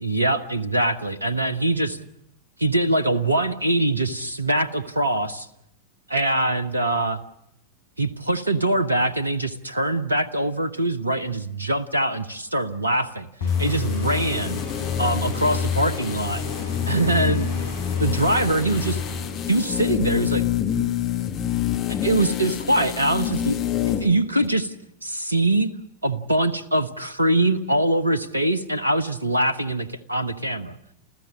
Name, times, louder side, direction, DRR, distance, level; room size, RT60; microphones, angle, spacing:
voice 1, 0.0-2.0 2.6-5.5 6.1-7.2 8.0-13.3 13.6-14.6 15.0-16.4 16.9-17.5 18.0-19.0 19.5-20.4 21.9-23.6 24.0-24.7 25.0-25.7 26.0-30.8, right 1 dB, 85° right, 15 dB, 1.0 m, -23 dB
sound 1, 13.4-19.9, left 6 dB, 65° left, 7.1 m, -28 dB
sound 2, 13.5-24.1 24.4-24.5, left 11 dB, 35° left, 1.9 m, -28 dB
29.0 x 14.5 x 7.6 m, 0.79 s
figure-of-eight pair, 90°, 0 cm